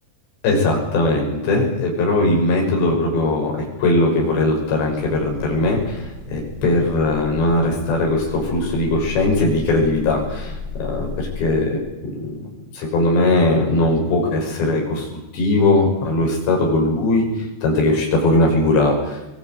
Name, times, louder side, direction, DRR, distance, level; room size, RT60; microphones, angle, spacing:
voice 1, 0.4-3.5 3.8-12.4 12.7-15.1 15.3-17.3 17.6-19.2, left 2 dB, 80° left, 0 dB, 8.3 m, -19 dB
sound 1, 4.3-11.6, left 4 dB, 15° right, 7.9 m, -34 dB
22.0 x 22.0 x 9.3 m, 1.0 s
omnidirectional pair, 5.0 m